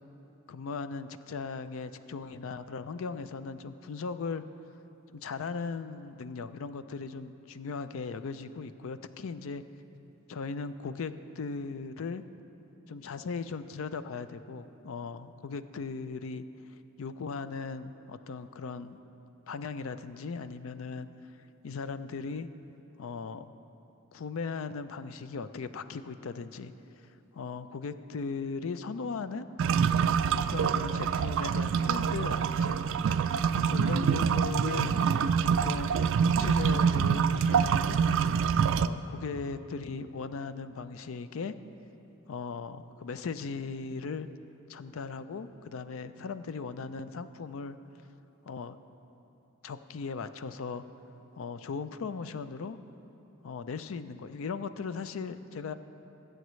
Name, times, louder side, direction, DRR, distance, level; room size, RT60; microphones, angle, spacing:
voice 1, 0.5-4.4 5.1-9.6 10.3-12.2 12.9-16.4 17.0-19.0 19.5-21.1 21.6-22.5 23.0-23.5 24.1-26.7 27.3-29.5 30.5-32.8 33.6-35.0 35.6-36.0 36.4-38.0 38.6-41.5 42.3-44.3 44.7-47.8 48.4-48.8 49.6-50.8 51.3-52.8 53.4-55.7, left 4 dB, 70° left, 12 dB, 0.4 m, -38 dB
sound 1, 29.6-38.9, right 6 dB, 65° right, 0.3 m, -26 dB
22.0 x 7.8 x 3.2 m, 3.0 s
head